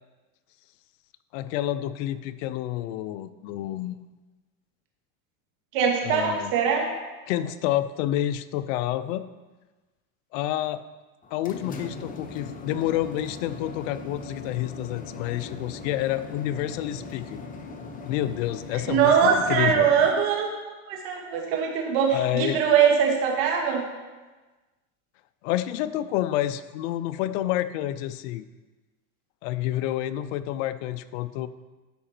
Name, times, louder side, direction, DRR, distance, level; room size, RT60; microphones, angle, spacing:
voice 1, 1.3-4.0 6.0-6.5 7.3-9.2 10.3-10.8 11.3-17.4 18.0-19.9 22.1-22.6 25.4-28.4 29.4-31.5, left 13 dB, 60° left, 12 dB, 0.6 m, -29 dB
voice 2, 5.7-6.9 18.7-23.8, right 7 dB, 55° right, 0 dB, 2.2 m, -22 dB
sound 1, 11.2-20.1, left 4 dB, 20° left, 0.8 m, -39 dB
12.5 x 5.0 x 4.4 m, 1.2 s
supercardioid pair, 125°, 42 cm